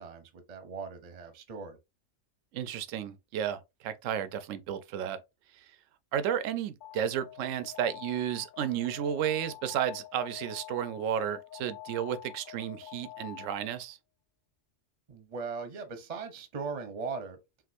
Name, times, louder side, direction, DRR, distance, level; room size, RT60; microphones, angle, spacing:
voice 1, 0.0-1.8 15.1-17.4, right 5 dB, 40° right, 0.7 m, -39 dB
voice 2, 2.5-5.2 5.6-5.7 6.1-14.0, right 9 dB, 85° right, 1.0 m, -33 dB
Alarm, 6.8-13.9, left 14 dB, 55° left, 0.6 m, -47 dB
5.8 x 2.5 x 2.5 m
omnidirectional pair, 1.3 m